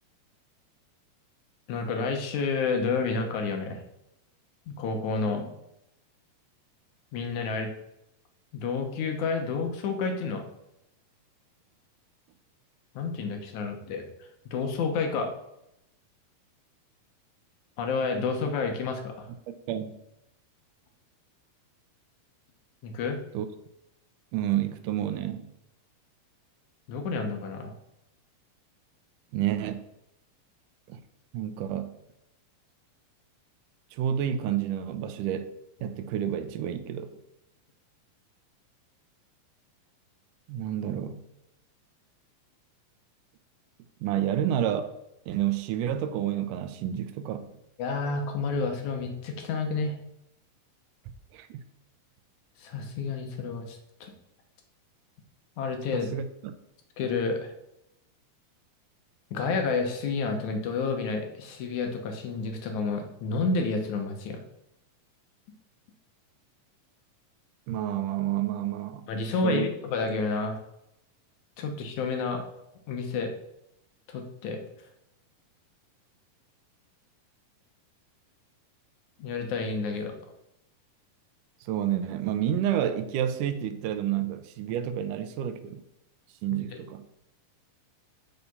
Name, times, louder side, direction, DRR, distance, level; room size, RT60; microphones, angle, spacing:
voice 1, 1.7-3.8 4.7-5.5 7.1-7.7 8.5-10.4 13.0-14.1 14.5-15.3 17.8-19.3 22.8-23.2 26.9-27.7 47.8-50.0 52.6-54.1 55.6-56.1 57.0-57.5 59.3-64.4 69.1-70.6 71.6-72.4 72.9-73.3 74.1-74.6 79.2-80.1 86.5-86.8, left 4 dB, 65° left, 2.3 m, -30 dB
voice 2, 19.5-20.0 23.3-23.5 24.3-25.5 29.3-29.9 30.9-31.0 31.3-32.0 33.9-35.5 35.8-37.1 40.5-41.2 44.0-44.9 45.3-47.5 51.3-51.6 55.9-56.5 67.7-69.1 69.4-69.7 81.6-85.8 86.4-87.0, right 10 dB, 75° right, 2.1 m, -29 dB
8.3 x 5.7 x 5.4 m
omnidirectional pair, 3.9 m